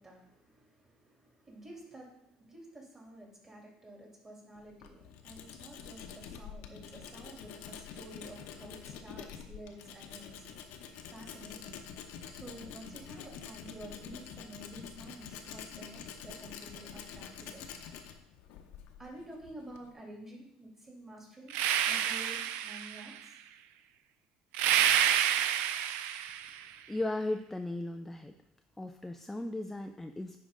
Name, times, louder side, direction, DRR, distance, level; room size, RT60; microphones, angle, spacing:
voice 1, 0.0-10.4 11.0-11.8 12.3-17.8 19.0-21.6 21.8-23.3, right 1 dB, 20° right, -2 dB, 3.0 m, -50 dB
Tools, 4.6-19.9, left 7 dB, 75° left, 0.9 m, -47 dB
sound 1, 21.5-23.2 24.5-26.6, right 10 dB, 75° right, 0.5 m, -29 dB
voice 2, 26.7-28.3 28.8-30.4, left 2 dB, 5° left, 6 dB, 0.4 m, -36 dB
9.8 x 5.1 x 3.8 m, 0.79 s
supercardioid pair, 110°, 3 cm